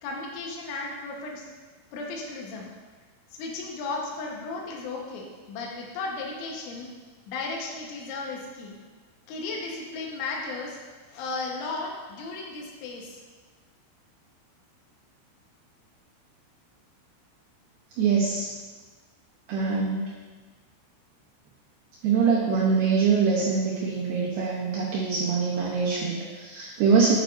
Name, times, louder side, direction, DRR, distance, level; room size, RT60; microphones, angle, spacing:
voice 1, 0.0-1.4 1.9-2.7 3.3-6.9 7.3-8.8 9.3-10.8 11.1-13.2, left 3 dB, 75° left, -1 dB, 3.4 m, -35 dB
voice 2, 18.0-18.5 19.5-20.0 22.0-27.2, right 5 dB, 90° right, -4 dB, 2.2 m, -24 dB
9.2 x 8.9 x 2.6 m, 1.4 s
omnidirectional pair, 5.9 m